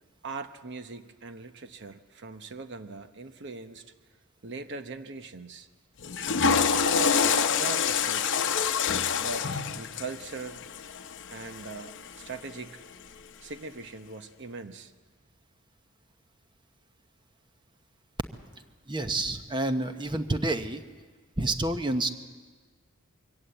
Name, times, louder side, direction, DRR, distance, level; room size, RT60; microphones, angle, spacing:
voice 1, 0.2-3.8 4.4-5.7 6.7-8.3 9.2-10.7 11.3-12.8 13.4-14.9, right 3 dB, 55° right, 9 dB, 0.9 m, -40 dB
Water / Toilet flush, 6.0-12.2, left 6 dB, 55° left, 0.8 m, -27 dB
voice 2, 18.9-20.8 21.4-22.1, right 2 dB, 20° right, 8 dB, 0.9 m, -28 dB
23.0 x 17.0 x 8.0 m, 1.5 s
head